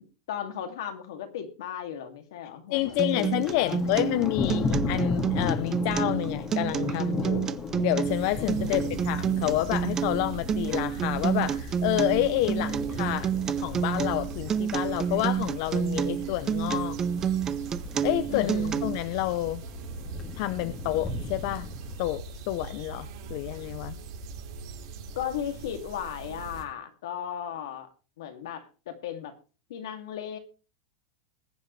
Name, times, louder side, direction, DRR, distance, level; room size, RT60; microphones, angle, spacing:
voice 1, 0.3-4.5 8.6-9.0 18.3-18.8 25.2-27.9 28.2-29.3 29.7-30.4, left 9 dB, 80° left, 5 dB, 2.4 m, -36 dB
voice 2, 2.7-13.3 13.6-17.0 18.0-18.5 18.8-19.6 20.3-21.7 22.0-23.9, left 16 dB, 55° left, 13 dB, 0.7 m, -29 dB
Thunder, 2.8-22.0, left 4 dB, 20° left, 1.9 m, -36 dB
Acoustic guitar, 3.0-19.0, right 8 dB, 20° right, 0.6 m, -29 dB
sound 1, 8.0-26.6, right 3 dB, 75° right, 3.5 m, -41 dB
20.5 x 8.0 x 3.2 m, 0.34 s
supercardioid pair, 145°, 2 cm